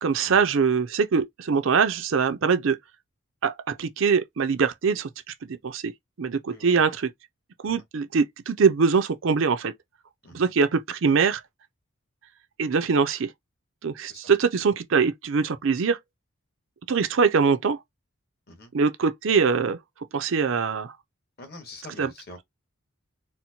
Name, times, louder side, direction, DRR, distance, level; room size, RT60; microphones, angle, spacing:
voice 1, 0.0-2.8 3.4-5.1 5.6-5.9 6.2-7.1 7.6-9.7 10.3-11.4 12.6-13.3 13.8-16.0 16.9-17.8 18.7-19.8 20.1-20.9 22.0-22.1, right 5 dB, 60° right, 0.5 m, -23 dB
voice 2, 6.5-6.8 7.6-7.8 10.2-10.5 14.1-14.3 18.5-18.7 21.4-22.4, left 2 dB, 45° left, 1.3 m, -45 dB
4.2 x 2.1 x 2.8 m
head